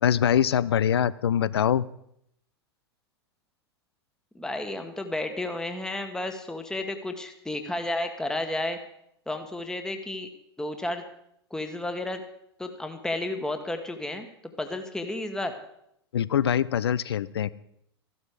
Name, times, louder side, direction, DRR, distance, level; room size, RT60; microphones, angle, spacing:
voice 1, 0.0-1.9 16.1-17.5, left 9 dB, 70° left, 19 dB, 0.6 m, -23 dB
voice 2, 4.3-8.8 9.3-10.3 10.6-11.0 11.5-12.2 12.6-14.3 14.6-15.5, left 2 dB, 5° left, 6 dB, 1.4 m, -32 dB
14.0 x 12.5 x 5.1 m, 0.74 s
figure-of-eight pair, 90°, 14 cm